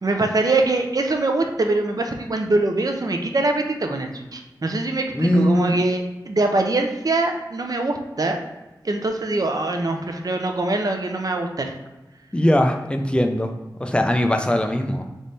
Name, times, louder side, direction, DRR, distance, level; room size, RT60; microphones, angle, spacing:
voice 1, 0.0-8.4 8.8-11.7, right 2 dB, 55° right, 4 dB, 0.6 m, -23 dB
voice 2, 5.1-5.7 12.3-13.5 13.8-15.1, left 1 dB, 15° left, 5 dB, 0.5 m, -20 dB
3.5 x 3.1 x 4.1 m, 1.1 s
wide cardioid pair, 60°, 8 cm